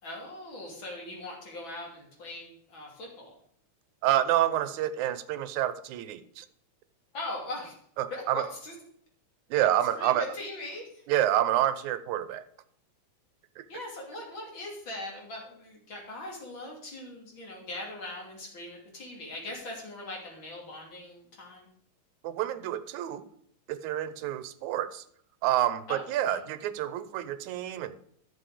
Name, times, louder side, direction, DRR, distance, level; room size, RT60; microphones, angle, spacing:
voice 1, 0.0-3.4 7.1-7.8 8.1-8.7 10.0-11.0 13.7-21.7 25.9-26.0 26.3-26.4, left 2 dB, 40° left, -1 dB, 3.6 m, -40 dB
voice 2, 4.0-6.5 8.0-8.4 9.5-10.2 11.1-12.4 13.6-13.7 22.2-23.3 23.7-25.0 25.4-28.0, right 12 dB, 85° right, 13 dB, 2.2 m, -28 dB
11.5 x 7.2 x 5.0 m, 0.66 s
omnidirectional pair, 3.4 m